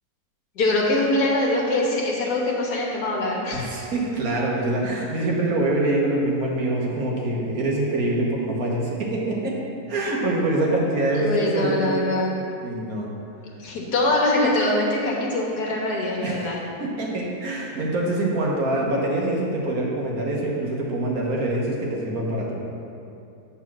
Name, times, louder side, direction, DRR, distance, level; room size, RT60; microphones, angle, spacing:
voice 1, 0.6-3.6 11.2-12.3 13.6-16.6, left 2 dB, 85° left, -2 dB, 1.8 m, -23 dB
voice 2, 3.5-9.5 9.9-12.0 12.6-13.1 16.2-22.6, right 1 dB, 65° right, -2 dB, 1.6 m, -25 dB
8.2 x 4.1 x 6.0 m, 2.6 s
omnidirectional pair, 1.7 m